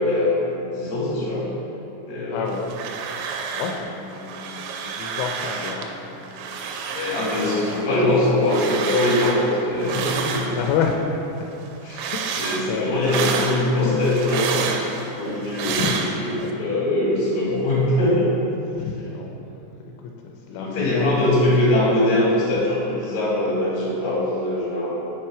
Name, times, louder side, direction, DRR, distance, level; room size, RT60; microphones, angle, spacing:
voice 1, 0.0-1.5 2.0-2.5 6.9-10.6 11.8-18.3 20.6-25.0, left 1 dB, 50° left, -7 dB, 2.5 m, -22 dB
voice 2, 2.3-2.8 3.5-7.0 7.4-8.0 8.2-8.4 9.8-10.1 10.6-11.0 12.1-13.0 15.6-15.9 18.7-19.4 20.2-21.1, left 7 dB, 85° left, 1 dB, 2.8 m, -30 dB
sound 1, 2.5-3.9 4.1-5.9 6.2-11.0 11.3-16.5, right 5 dB, 85° right, 2.8 m, -29 dB
6.8 x 5.6 x 4.8 m, 3.0 s
omnidirectional pair, 5.1 m